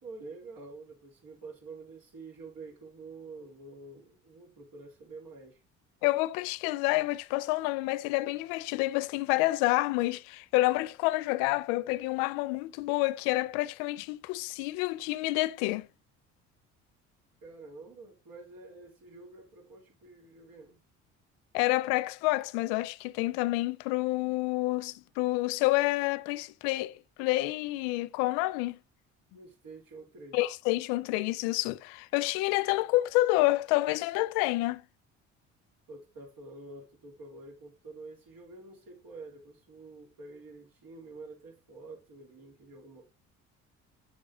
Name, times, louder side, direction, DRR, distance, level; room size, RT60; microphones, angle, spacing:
voice 1, 0.0-5.6 17.4-20.8 29.3-30.4 35.9-43.1, right 3 dB, 60° right, 2.9 m, -48 dB
voice 2, 6.0-15.9 21.5-26.9 27.2-28.8 30.3-34.8, left 19 dB, 70° left, 0.5 m, -28 dB
7.2 x 6.7 x 2.7 m
hypercardioid pair, 55°, 39 cm